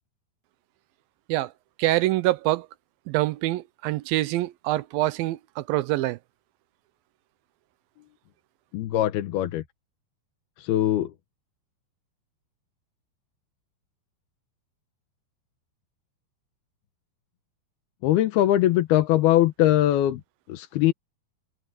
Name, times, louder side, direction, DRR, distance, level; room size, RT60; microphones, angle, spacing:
voice 1, 1.8-2.7 3.1-6.2, right 17 dB, 80° right, 2.3 m, -25 dB
voice 2, 8.7-9.6 10.6-11.1 18.0-20.2 20.5-20.9, left 13 dB, 90° left, 3.0 m, -21 dB
omnidirectional pair, 4.4 m